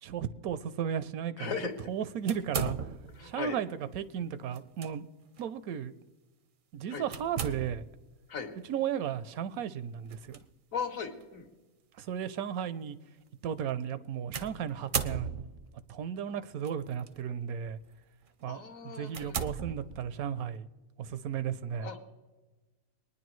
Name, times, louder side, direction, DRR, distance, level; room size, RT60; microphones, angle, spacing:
voice 1, 0.0-1.5 1.9-2.8 3.2-3.7 3.9-5.1 5.4-5.9 6.7-7.8 8.7-10.4 12.0-13.0 13.4-15.3 15.9-17.8 18.4-20.7 21.0-21.9, right 8 dB, 85° right, 1.1 m, -34 dB
voice 2, 1.4-1.7 3.1-3.6 6.9-7.1 8.3-8.5 10.7-11.5 18.5-19.5 21.8-22.0, left 6 dB, 65° left, 1.6 m, -37 dB
sound 1, 2.3-3.3 4.5-4.9 5.4-5.5 7.1-8.0 10.1-10.4 11.2-11.3 14.3-15.7 16.6-17.1 17.7-17.9 18.4-18.5 19.1-20.3, right 6 dB, 55° right, 0.6 m, -36 dB
23.0 x 9.8 x 3.1 m
omnidirectional pair, 1.5 m